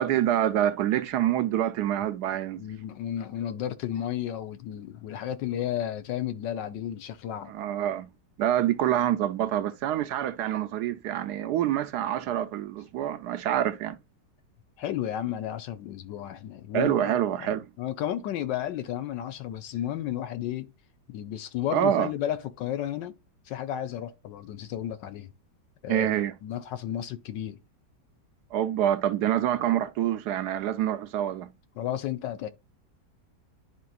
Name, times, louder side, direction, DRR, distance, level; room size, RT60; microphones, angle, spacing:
voice 1, 0.0-2.6 7.5-8.1 8.4-14.0 16.7-17.7 21.7-22.1 25.9-26.3 28.5-31.5, right 11 dB, 70° right, 1.0 m, -26 dB
voice 2, 2.6-7.5 14.8-17.5 17.8-20.7 21.1-23.2 23.5-25.3 25.8-26.2 26.4-27.6 31.8-32.5, left 11 dB, 80° left, 1.4 m, -33 dB
11.0 x 4.4 x 2.3 m
omnidirectional pair, 1.9 m